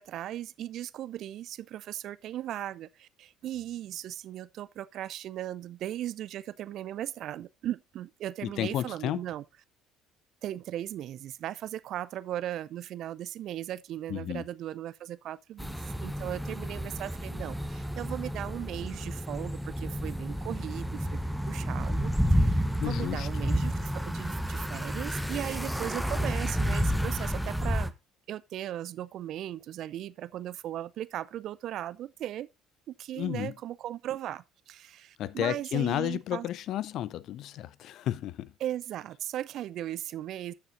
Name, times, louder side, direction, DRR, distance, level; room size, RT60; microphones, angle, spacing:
voice 1, 0.0-9.4 10.4-27.9 28.3-32.5 32.9-36.5 38.6-40.5, right 12 dB, 55° right, 0.5 m, -37 dB
voice 2, 8.4-9.2 14.1-14.4 22.8-23.3 33.2-33.5 35.2-38.5, left 12 dB, 55° left, 0.5 m, -32 dB
sound 1, 15.6-27.9, equal, ahead, 1.0 m, -30 dB
14.0 x 6.6 x 2.6 m
figure-of-eight pair, 55°, 0 cm